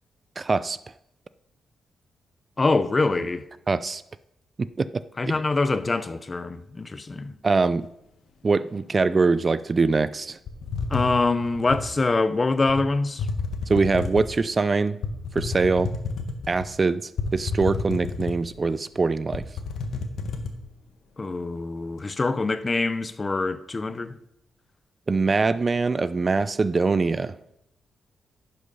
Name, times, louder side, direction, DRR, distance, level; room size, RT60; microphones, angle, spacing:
voice 1, 0.4-0.8 3.7-4.0 4.8-4.9 7.4-7.9 8.4-10.4 13.7-15.0 15.3-15.9 16.5-19.4 25.1-27.4, right 4 dB, 35° right, 0.3 m, -23 dB
voice 2, 2.6-3.4 5.2-7.3 10.9-13.3 21.2-24.2, left 3 dB, 25° left, 0.6 m, -24 dB
sound 1, 10.5-11.9 12.7-12.8 13.2-14.4 15.0-16.7 17.2-18.6 19.0-19.1 19.3-20.5, left 4 dB, 80° left, 1.2 m, -30 dB
11.0 x 6.6 x 5.3 m
cardioid pair, 105°, 0 cm